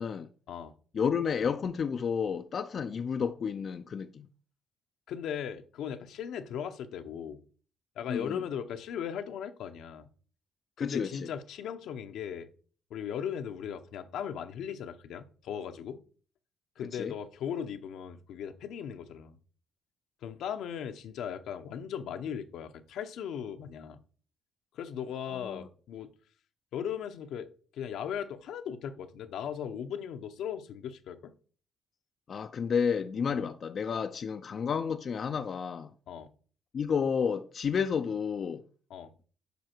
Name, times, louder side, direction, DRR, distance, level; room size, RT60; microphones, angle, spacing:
voice 1, 0.9-4.3 8.1-8.4 10.8-11.3 16.9-17.1 25.4-25.7 32.3-35.9 36.7-38.6, left 6 dB, 50° left, 0.5 m, -31 dB
voice 2, 5.1-7.4 8.0-10.1 10.8-12.5 12.9-16.0 16.8-19.4 20.2-24.0 24.7-26.1 26.7-31.3 33.3-33.4 36.1-36.3 38.9-39.1, left 8 dB, 80° left, 0.9 m, -38 dB
8.2 x 5.5 x 4.5 m
cardioid pair, 90°, 0 cm